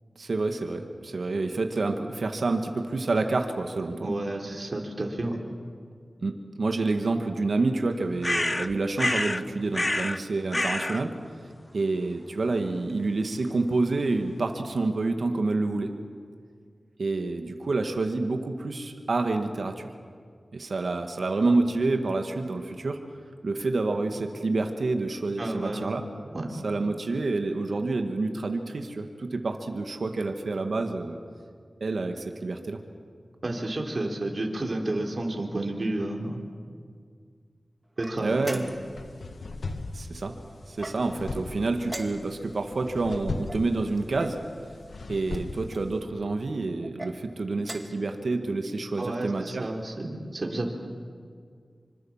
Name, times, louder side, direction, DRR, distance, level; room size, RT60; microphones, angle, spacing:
voice 1, 0.2-4.1 6.2-11.1 11.7-15.9 17.0-19.9 20.5-23.0 23.4-26.0 26.6-31.2 31.8-32.8 38.2-38.7 39.9-40.3 40.7-44.4 45.1-49.7, right 3 dB, 75° right, 5 dB, 2.0 m, -28 dB
voice 2, 4.0-5.4 25.4-26.0 26.3-26.6 33.4-36.4 38.0-38.6 49.0-50.7, right 2 dB, 50° right, 1 dB, 3.8 m, -31 dB
sound 1, 8.2-9.4 9.7-10.2 10.5-11.0, left 1 dB, 30° left, 0.9 m, -27 dB
sound 2, 38.0-39.0 40.7-41.3 41.8-42.6 43.5-44.4 45.3-45.9 46.8-47.1 47.6-48.1, right 1 dB, 25° right, 2.7 m, -41 dB
sound 3, 38.6-46.0, left 3 dB, 80° left, 1.5 m, -38 dB
25.5 x 25.5 x 7.4 m, 2.1 s
cardioid pair, 50°, 0 cm